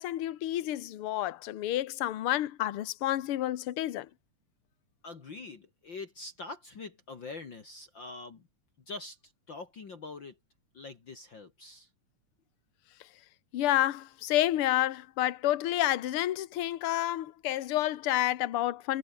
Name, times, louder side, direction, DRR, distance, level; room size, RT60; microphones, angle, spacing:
voice 1, 0.0-4.1 13.5-19.0, left 14 dB, 60° left, 1.7 m, -29 dB
voice 2, 5.0-8.5 8.9-9.2 9.5-10.4 10.7-11.9, left 3 dB, 40° left, 2.4 m, -44 dB
omnidirectional pair, 3.5 m